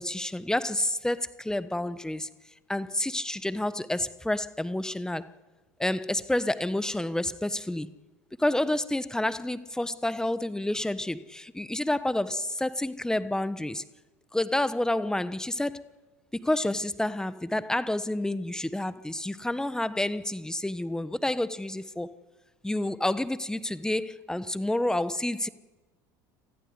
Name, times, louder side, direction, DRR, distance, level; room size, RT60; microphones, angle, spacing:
voice 1, 0.0-2.3 2.7-5.3 5.8-7.9 8.4-13.8 14.3-15.9 16.4-22.2 22.6-25.5, left 1 dB, 5° left, 1.2 m, -29 dB
27.5 x 15.0 x 9.7 m
supercardioid pair, 90°, 10 cm